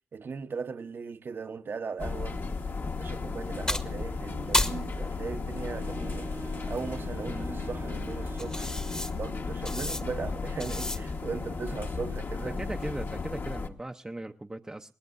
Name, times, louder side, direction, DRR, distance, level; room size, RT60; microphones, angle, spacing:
voice 1, 0.1-2.4 3.0-6.3 6.7-8.7 9.1-12.6, right 5 dB, 55° right, 1.0 m, -38 dB
sound 1, 2.0-13.7, left 4 dB, 50° left, 1.3 m, -35 dB
sound 2, 2.2-11.3, left 1 dB, 15° left, 1.1 m, -36 dB
Wind instrument woodwind instrument, 5.5-9.7, right 5 dB, 80° right, 1.4 m, -46 dB
voice 2, 12.4-14.9, right 2 dB, 15° right, 0.7 m, -38 dB
22.0 x 18.5 x 2.6 m
wide cardioid pair, 100°, 4 cm